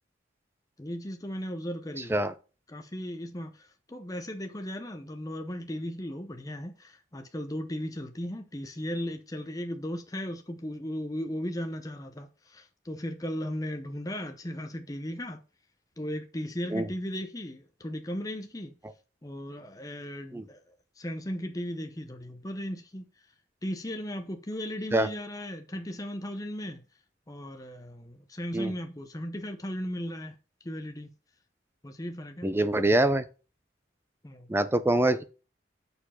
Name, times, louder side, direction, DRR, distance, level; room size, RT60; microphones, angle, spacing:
voice 1, 0.8-2.2 2.7-15.4 16.0-18.7 19.2-23.0 23.6-26.8 27.3-30.4 30.6-31.1 31.8-32.6 34.2-34.5, equal, 20° left, 0.7 m, -36 dB
voice 2, 32.4-33.2 34.5-35.2, right 1 dB, 10° right, 0.4 m, -24 dB
6.8 x 4.6 x 5.7 m
head